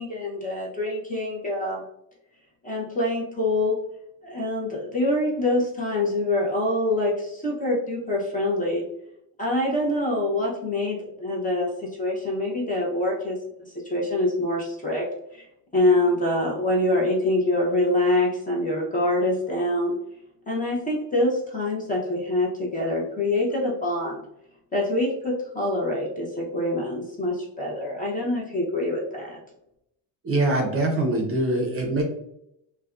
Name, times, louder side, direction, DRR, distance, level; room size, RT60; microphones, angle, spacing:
voice 1, 0.0-1.8 2.6-3.8 4.2-8.8 9.4-15.1 15.3-15.4 15.7-19.9 20.5-24.2 24.7-29.4, left 1 dB, 20° left, -3 dB, 0.6 m, -25 dB
voice 2, 30.2-32.0, right 2 dB, 30° right, 1 dB, 0.5 m, -23 dB
2.5 x 2.1 x 2.3 m, 0.80 s
cardioid pair, 105°, 46 cm